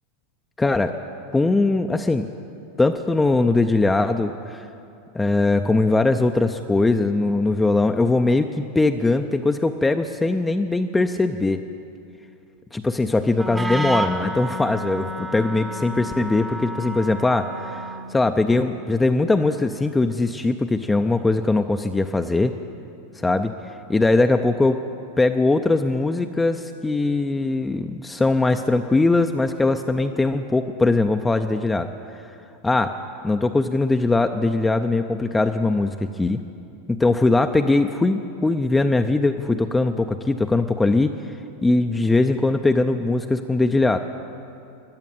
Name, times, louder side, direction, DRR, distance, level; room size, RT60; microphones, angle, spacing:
voice 1, 0.6-1.0 1.3-2.3 2.8-4.7 5.1-11.6 12.7-22.6 23.2-23.5 23.9-24.8 25.2-31.9 32.6-32.9 33.2-36.4 36.9-41.2 41.6-44.0, left 2 dB, 10° left, 7 dB, 0.4 m, -21 dB
Wind instrument woodwind instrument, 13.3-18.2, right 1 dB, 10° right, 0.8 m, -30 dB
14.5 x 9.6 x 9.1 m, 2.7 s
supercardioid pair, 145°, 0 cm